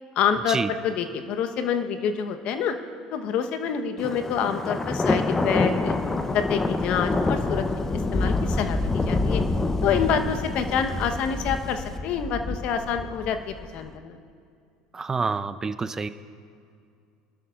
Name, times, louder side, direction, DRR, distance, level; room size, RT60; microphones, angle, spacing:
voice 1, 0.2-2.7 3.1-5.9 6.3-7.6 8.1-9.4 9.8-14.2, left 7 dB, 55° left, 7 dB, 1.1 m, -27 dB
Thunder, 4.0-13.8, left 3 dB, 20° left, 0.8 m, -27 dB
voice 2, 14.9-16.1, right 4 dB, 25° right, 13 dB, 0.6 m, -27 dB
23.5 x 12.5 x 2.5 m, 2.4 s
hypercardioid pair, 80°, 2 cm